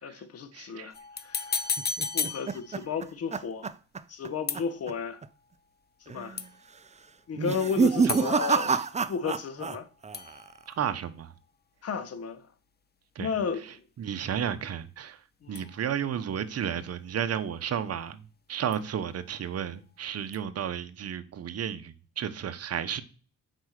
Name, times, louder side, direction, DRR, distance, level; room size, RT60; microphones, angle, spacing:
voice 1, 0.0-0.9 1.2-1.6 2.1-3.7 4.1-5.2 6.1-6.4 7.3-8.8 9.1-9.9 11.8-12.5 13.2-13.8 15.4-15.7, left 6 dB, 55° left, 1.4 m, -33 dB
voice 2, 0.5-0.9 8.0-8.1 10.8-11.3 13.1-13.3 14.0-15.2 15.5-18.2 18.5-23.0, right 9 dB, 55° right, 1.1 m, -32 dB
sound 1, 0.9-3.1 4.5-5.2 6.4-6.9 8.1-9.9 10.1-11.3 15.6-16.3 18.7-19.4 20.3-20.4, left 5 dB, 35° left, 0.9 m, -36 dB
sound 2, 1.8-4.3 4.5-4.9 5.2-5.3 6.1-6.5 7.3-9.8 10.0-10.6, right 5 dB, 25° right, 0.6 m, -28 dB
7.9 x 5.0 x 6.6 m
cardioid pair, 90°, 30 cm